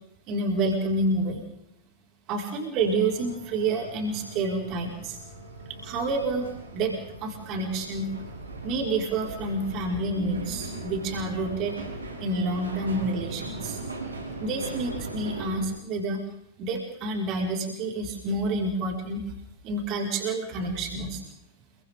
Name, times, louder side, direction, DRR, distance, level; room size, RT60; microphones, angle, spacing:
voice 1, 0.3-1.4 2.3-5.2 5.7-6.9 7.2-8.1 8.6-11.8 12.2-13.8 14.4-16.2 16.6-19.2 19.6-21.2, right 2 dB, 40° right, 0 dB, 5.6 m, -28 dB
sound 1, 2.8-15.6, right 2 dB, 80° right, 7.6 m, -39 dB
29.0 x 24.5 x 3.9 m, 0.77 s
figure-of-eight pair, 90°, 0 cm